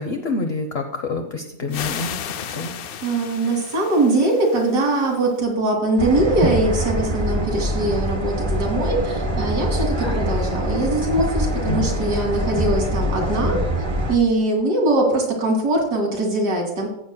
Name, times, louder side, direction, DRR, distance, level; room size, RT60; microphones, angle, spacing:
voice 1, 0.0-2.2 2.5-2.7 11.7-11.9, left 3 dB, 50° left, 4 dB, 0.9 m, -27 dB
sound 1, 1.7-5.4, left 9 dB, 70° left, 1.0 m, -34 dB
voice 2, 3.0-13.6 14.1-16.9, right 2 dB, 90° right, -1 dB, 2.9 m, -21 dB
sound 2, 6.0-14.2, equal, 25° right, 0.6 m, -24 dB
14.5 x 8.3 x 2.2 m, 0.85 s
omnidirectional pair, 1.7 m